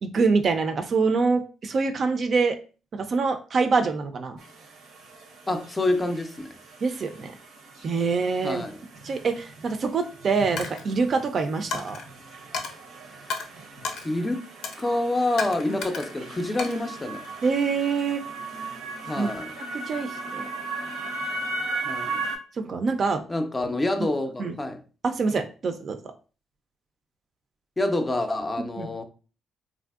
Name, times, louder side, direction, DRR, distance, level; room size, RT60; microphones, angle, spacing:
voice 1, 0.0-2.6 2.9-4.4 6.8-7.3 7.8-8.6 9.0-12.0 17.4-18.2 19.2-19.3 19.7-20.5 22.6-23.2 24.4-24.5 25.0-26.0 28.8-28.9, right 4 dB, 50° right, 0.4 m, -25 dB
sound 1, 4.4-22.4, right 2 dB, 90° right, 0.6 m, -38 dB
voice 2, 5.5-6.5 8.4-8.8 14.0-14.4 14.8-17.2 19.1-19.5 21.8-22.3 23.3-24.8 27.8-29.0, left 2 dB, 20° left, 0.4 m, -27 dB
Coin (dropping), 10.6-10.9 11.7-12.1 12.5-12.7 13.3-13.5 13.8-14.1 14.6-14.9 15.4-16.1 16.6-17.5, left 4 dB, 75° left, 0.5 m, -33 dB
3.3 x 2.5 x 2.4 m
cardioid pair, 90°, 0 cm